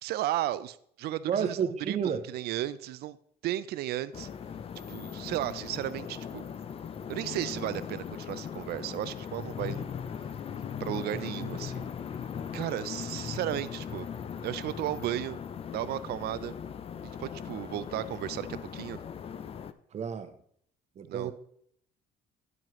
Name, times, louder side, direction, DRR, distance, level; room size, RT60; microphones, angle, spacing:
voice 1, 0.0-3.2 3.4-4.3 4.9-6.5 7.1-9.9 10.8-11.9 12.5-14.1 14.4-15.4 15.7-16.5 17.0-19.0 21.1-21.3, right 13 dB, 70° right, 0.5 m, -34 dB
voice 2, 1.3-2.3 11.2-11.3 19.9-20.3 21.0-21.3, right 7 dB, 40° right, 0.8 m, -31 dB
sound 1, 4.1-19.7, left 7 dB, 35° left, 0.5 m, -39 dB
9.4 x 7.5 x 3.1 m
cardioid pair, 110°, 17 cm